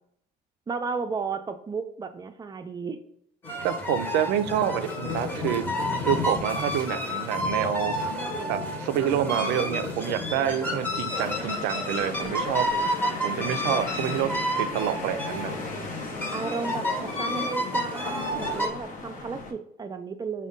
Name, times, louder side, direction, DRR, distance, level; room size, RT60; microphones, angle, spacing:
voice 1, 0.7-3.0 13.3-14.4 16.3-20.5, right 5 dB, 25° right, 7 dB, 0.4 m, -34 dB
sound 1, 3.4-18.7, left 1 dB, 10° left, 0.9 m, -30 dB
voice 2, 3.6-5.6 6.0-7.9 8.5-12.7 13.2-14.3 14.6-15.5, right 10 dB, 90° right, 11 dB, 0.4 m, -27 dB
sound 2, 11.1-19.5, left 3 dB, 50° left, 0.8 m, -38 dB
5.1 x 2.2 x 3.6 m, 0.70 s
cardioid pair, 110°, 17 cm